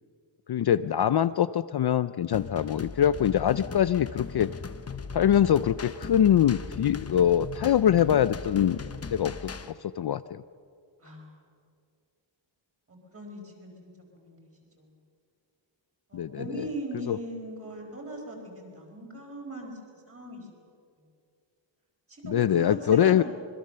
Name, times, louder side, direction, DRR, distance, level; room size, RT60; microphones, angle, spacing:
voice 1, 0.5-4.5 5.1-8.8 9.1-9.5 10.0-10.4 16.1-16.7 17.1-17.2 22.2-23.2, left 10 dB, 55° left, 14 dB, 0.5 m, -23 dB
sound 1, 2.3-9.7, left 5 dB, 30° left, 0.9 m, -38 dB
voice 2, 11.0-11.4 12.9-14.4 14.8-14.9 16.1-19.7 20.1-20.5 22.1-23.2, right 1 dB, 30° right, 0 dB, 4.9 m, -39 dB
26.0 x 21.5 x 6.8 m, 2.3 s
wide cardioid pair, 165°, 48 cm